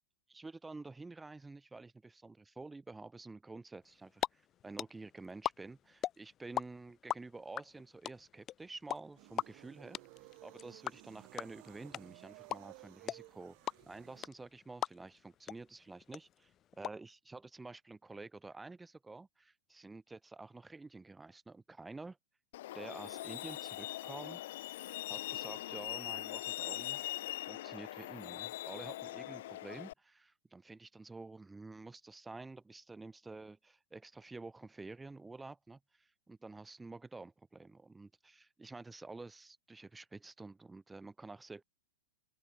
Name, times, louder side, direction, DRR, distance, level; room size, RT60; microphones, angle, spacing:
voice 1, 0.3-10.0 10.4-16.5 16.8-22.2 22.7-24.4 25.1-27.0 27.4-41.6, right 3 dB, 5° right, 2.1 m, -50 dB
sound 1, 3.9-4.3 4.5-6.6 6.9-15.2 15.5-15.6 15.8-16.9, left 11 dB, 20° left, 0.6 m, -37 dB
sound 2, 9.2-14.3, right 40 dB or more, 35° right, 3.1 m, -57 dB
Truck, 22.5-29.9, left 15 dB, 50° left, 1.0 m, -42 dB
open air
supercardioid pair, 175°, 0 cm